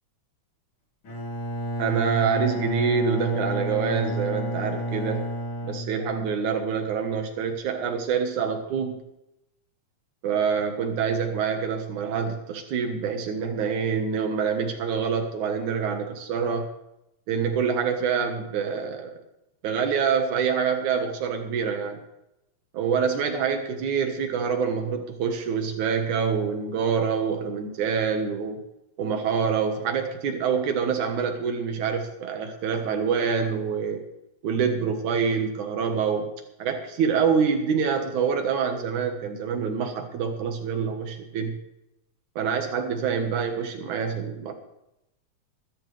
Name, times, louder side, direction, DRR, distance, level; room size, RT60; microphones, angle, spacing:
Bowed string instrument, 1.0-6.5, right 1 dB, 45° left, 3.2 m, -30 dB
voice 1, 1.8-5.2 5.6-9.0 10.2-16.7 17.3-19.2 19.6-22.0 22.7-28.6 29.0-34.0 34.4-36.3 36.6-41.6 42.4-44.5, right 6 dB, 80° right, 5 dB, 2.8 m, -26 dB
21.5 x 12.0 x 3.3 m, 0.86 s
omnidirectional pair, 3.4 m